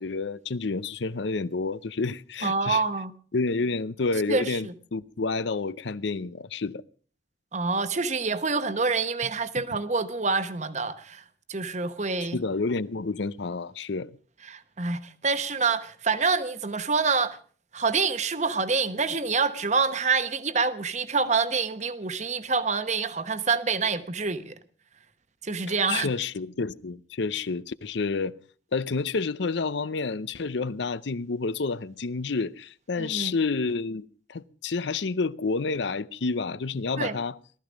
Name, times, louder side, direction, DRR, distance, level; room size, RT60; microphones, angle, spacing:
voice 1, 0.0-2.8 3.3-6.8 9.6-9.7 12.2-14.1 25.9-28.4 28.7-37.4, left 4 dB, 70° left, 0.6 m, -29 dB
voice 2, 2.4-3.1 4.3-4.7 7.5-11.2 11.5-12.4 14.4-17.4 17.7-24.6 25.4-26.1 33.0-33.3 37.0-37.2, right 4 dB, 40° right, 1.1 m, -27 dB
18.5 x 14.0 x 5.2 m
head